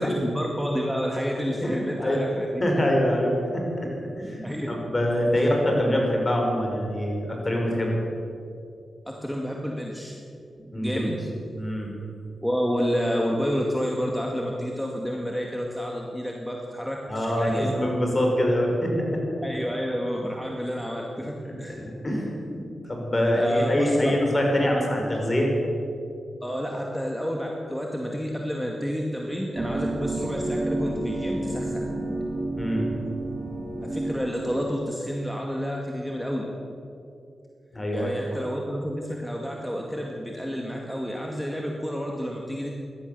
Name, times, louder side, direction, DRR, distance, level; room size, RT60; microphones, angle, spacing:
voice 1, 0.0-2.6 4.4-4.7 9.1-10.2 10.7-11.2 12.4-17.8 19.4-21.3 21.6-21.8 23.3-24.1 26.4-31.9 33.8-36.5 37.9-42.8, equal, 5° left, 0 dB, 2.1 m, -29 dB
voice 2, 1.6-3.9 4.2-8.0 10.7-11.0 11.6-11.9 17.1-19.2 21.7-25.5 32.6-32.9 37.7-38.4, equal, 30° left, 0 dB, 5.3 m, -25 dB
sound 1, 29.5-34.8, right 2 dB, 20° right, 3.2 m, -30 dB
17.0 x 12.0 x 6.9 m, 2.6 s
cardioid pair, 50°, 0 cm